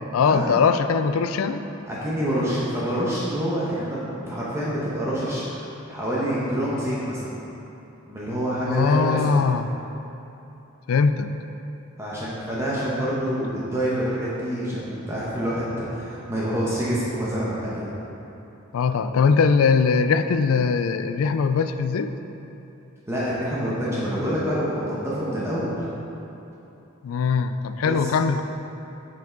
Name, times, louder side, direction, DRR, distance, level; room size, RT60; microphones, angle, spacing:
voice 1, 0.1-1.6 8.7-9.7 10.9-11.3 18.7-22.1 27.0-28.4, left 5 dB, 80° left, 10 dB, 0.4 m, -21 dB
voice 2, 1.9-7.3 8.0-9.3 12.0-17.9 23.1-25.8 27.8-28.1, equal, 15° right, -8 dB, 1.0 m, -27 dB
7.6 x 5.7 x 3.8 m, 3.0 s
head